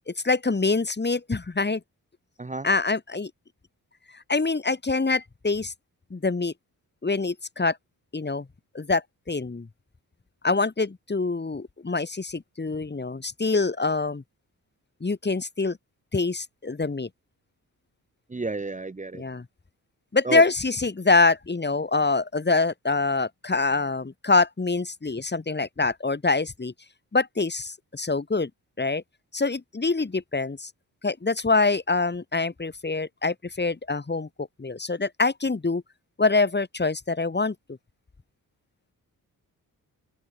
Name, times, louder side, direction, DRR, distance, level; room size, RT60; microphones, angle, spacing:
voice 1, 0.1-1.8 2.6-3.3 4.1-5.7 6.1-6.5 7.0-7.8 8.1-8.5 8.7-9.7 10.4-14.2 15.0-15.8 16.1-17.1 19.1-19.4 20.1-26.7 27.1-28.5 28.8-29.0 29.3-30.7 31.0-35.8 36.2-37.5, left 3 dB, 30° left, 3.2 m, -25 dB
voice 2, 18.3-19.2 20.2-20.4, right 3 dB, 20° right, 1.2 m, -31 dB
open air
cardioid pair, 85°, 36 cm